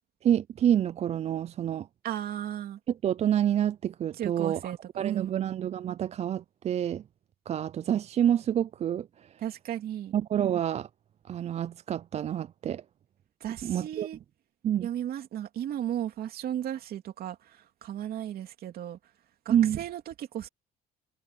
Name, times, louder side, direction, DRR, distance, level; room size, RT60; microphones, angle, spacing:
voice 1, 0.2-1.9 3.0-7.0 7.5-9.3 10.1-10.9 11.3-12.8 13.6-14.1 14.6-14.9 19.5-19.8, right 10 dB, 40° right, 0.4 m, -28 dB
voice 2, 2.0-2.8 4.2-5.4 9.4-10.1 13.4-14.2 14.8-19.0 19.4-20.5, right 11 dB, 65° right, 3.0 m, -35 dB
cardioid pair, 110°, 17 cm